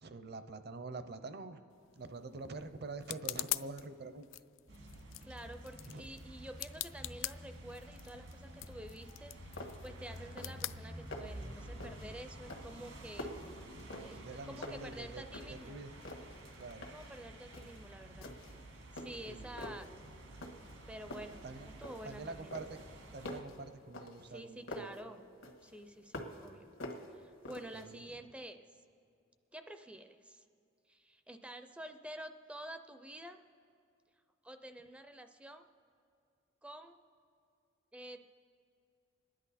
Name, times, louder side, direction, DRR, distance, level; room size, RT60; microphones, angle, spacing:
voice 1, 0.0-1.6 2.0-4.3 5.9-6.1 14.1-15.9 16.6-16.9 19.3-19.5 21.4-21.7 22.0-22.8 23.1-24.9 27.7-28.0, right 3 dB, 55° right, 10 dB, 0.7 m, -46 dB
sound 1, 1.7-11.6, left 16 dB, 70° left, 0.3 m, -45 dB
sound 2, 4.7-23.4, right 1 dB, 80° right, 2.0 m, -51 dB
voice 2, 5.2-13.3 14.0-15.9 16.9-18.3 18.9-19.9 20.9-22.6 24.2-25.2 25.6-26.7 27.1-28.6 29.5-30.4 30.9-33.4 34.4-35.7 36.6-37.0 37.9-38.3, right 1 dB, 5° right, 8 dB, 0.4 m, -49 dB
sound 3, 9.1-9.2 9.6-10.0 10.2-10.7 10.9-11.4 11.8-12.1 12.5-14.3 14.6-15.7 16.0-17.1 17.5-17.8 18.2-18.6 19.0-19.9 20.4-20.8 21.1-22.2 22.5-25.0 25.4-26.5 26.8-27.9, left 1 dB, 85° left, 1.5 m, -46 dB
27.0 x 10.5 x 4.2 m, 2.4 s
head